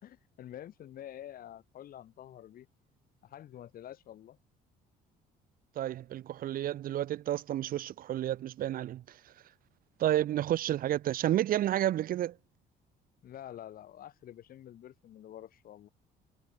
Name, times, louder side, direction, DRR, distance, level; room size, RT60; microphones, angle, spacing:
voice 1, 0.0-2.7 3.2-4.4 13.2-15.9, left 11 dB, 60° left, 2.9 m, -48 dB
voice 2, 5.8-9.0 10.0-12.3, right 12 dB, 60° right, 0.8 m, -30 dB
cardioid pair, 110°, 17 cm